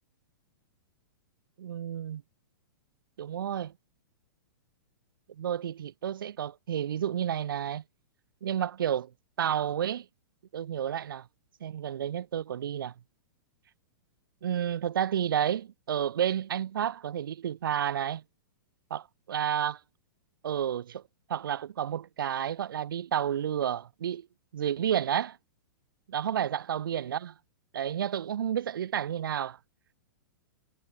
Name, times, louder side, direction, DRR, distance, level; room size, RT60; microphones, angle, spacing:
voice 1, 1.6-2.2 3.2-3.7 5.4-7.8 8.4-9.1 9.4-10.1 10.5-11.3 11.6-12.9 14.4-18.2 18.9-19.8 20.4-21.0 21.3-24.3 24.5-25.4 26.1-27.3 27.7-29.6, right 9 dB, 70° right, 1.9 m, -31 dB
hypercardioid pair, 180°, 12 cm